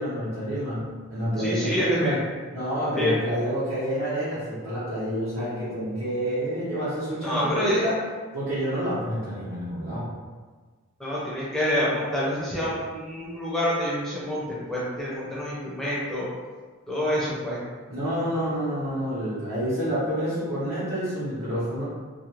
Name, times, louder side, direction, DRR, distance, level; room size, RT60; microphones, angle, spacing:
voice 1, 0.0-2.2 2.5-8.0 8.3-10.1 17.9-21.8, equal, 70° right, -13 dB, 0.9 m, -28 dB
voice 2, 1.4-2.2 2.9-3.1 7.2-7.9 11.0-16.3 16.9-17.6, equal, ahead, -8 dB, 0.6 m, -27 dB
2.4 x 2.1 x 2.9 m, 1.4 s
head